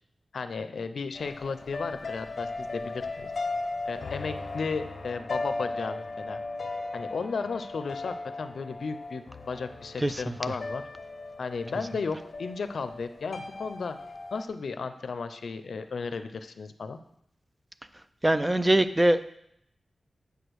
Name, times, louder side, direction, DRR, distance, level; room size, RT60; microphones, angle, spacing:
voice 1, 0.3-3.3 3.9-6.4 6.9-10.8 11.4-14.0 14.3-17.0, left 4 dB, 75° left, 10 dB, 0.6 m, -34 dB
sound 1, 1.1-14.4, left 3 dB, 55° left, 0.9 m, -37 dB
voice 2, 10.0-10.4 18.2-19.4, right 1 dB, 15° right, 12 dB, 0.4 m, -23 dB
8.1 x 5.0 x 6.3 m, 0.75 s
wide cardioid pair, 110°, 0 cm